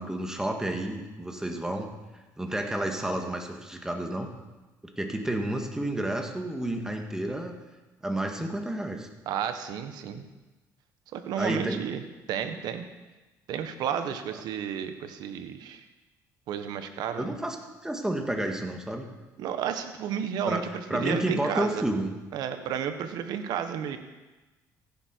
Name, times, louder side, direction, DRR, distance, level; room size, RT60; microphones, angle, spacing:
voice 1, 0.0-1.9 2.4-4.3 5.0-7.5 8.0-9.1 11.3-11.8 17.2-17.6 17.8-19.1 20.5-20.6 20.9-22.1, right 1 dB, 10° right, 3 dB, 2.0 m, -30 dB
voice 2, 9.3-10.2 11.1-12.0 12.3-12.9 13.5-15.8 16.5-17.3 19.4-21.8 22.3-24.0, right 8 dB, 70° right, 8 dB, 1.4 m, -32 dB
15.5 x 11.0 x 4.7 m, 1.1 s
cardioid pair, 95°, 7 cm